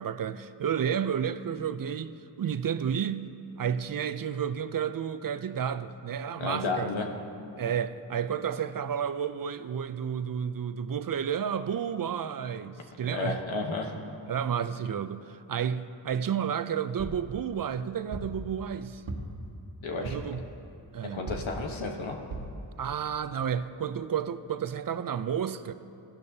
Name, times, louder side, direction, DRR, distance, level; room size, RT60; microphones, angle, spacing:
voice 1, 0.0-6.9 7.6-13.4 14.3-19.0 20.0-20.4 20.9-21.3 22.8-25.7, right 8 dB, 50° right, 12 dB, 0.5 m, -31 dB
voice 2, 6.3-7.1 13.1-13.9 19.8-20.1 21.1-22.2, left 3 dB, 90° left, 2 dB, 1.2 m, -32 dB
sound 1, 17.0-17.3 18.1-18.4 19.1-19.5 20.0-20.4 21.3-21.6 22.3-22.6 23.2-23.3 23.5-23.6, right 2 dB, 90° right, 1.4 m, -37 dB
15.5 x 12.0 x 2.8 m, 2.9 s
wide cardioid pair, 65°, 45 cm